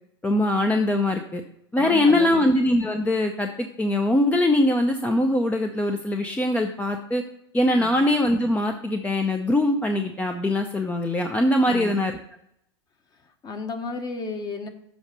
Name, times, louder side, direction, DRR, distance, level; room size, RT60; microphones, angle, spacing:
voice 1, 0.2-1.4 1.7-7.2 7.5-12.1, left 1 dB, 10° left, 5 dB, 0.6 m, -22 dB
voice 2, 1.8-2.5 7.7-8.0 11.7-12.0 13.4-14.7, left 4 dB, 25° left, 6 dB, 1.2 m, -33 dB
7.1 x 4.9 x 6.6 m, 0.74 s
hypercardioid pair, 110°, 15 cm